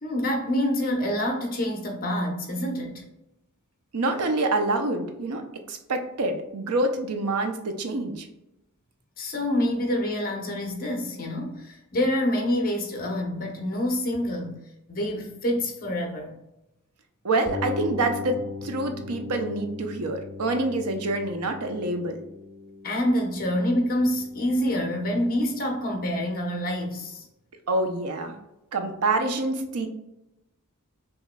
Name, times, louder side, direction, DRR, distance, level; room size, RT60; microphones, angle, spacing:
voice 1, 0.0-3.0 9.2-14.6 14.9-16.4 22.8-27.3, left 1 dB, 40° left, 2 dB, 1.0 m, -27 dB
voice 2, 3.9-8.3 17.2-22.3 27.7-28.4 28.7-29.9, right 2 dB, 80° right, 6 dB, 0.7 m, -27 dB
sound 1, 17.4-27.2, left 4 dB, 10° left, 0.9 m, -40 dB
5.6 x 3.1 x 2.3 m, 0.90 s
head